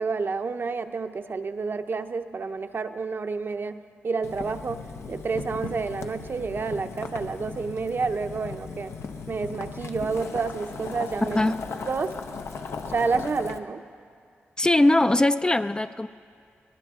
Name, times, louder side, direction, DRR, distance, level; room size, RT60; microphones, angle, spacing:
voice 1, 0.0-8.9 9.3-11.4 11.9-12.2 12.9-13.9, right 4 dB, 55° right, 8 dB, 0.7 m, -29 dB
Boiling, 4.2-13.6, left 5 dB, 80° left, 0.8 m, -37 dB
voice 2, 14.6-16.1, left 1 dB, 20° left, 11 dB, 0.4 m, -21 dB
22.5 x 17.5 x 3.7 m, 2.3 s
cardioid pair, 70°, 4 cm